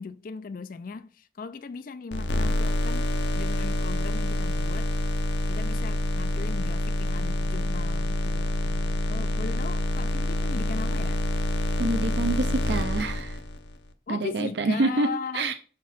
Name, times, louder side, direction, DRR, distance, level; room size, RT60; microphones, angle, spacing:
voice 1, 0.0-3.1 3.4-4.9 5.5-11.2 14.1-15.5, left 4 dB, 45° left, 0.4 m, -38 dB
sound 1, 2.1-13.8, left 1 dB, 70° left, 0.8 m, -27 dB
voice 2, 11.8-13.4 14.1-15.1 15.3-15.5, right 2 dB, 60° right, 0.6 m, -26 dB
5.9 x 4.4 x 5.7 m
head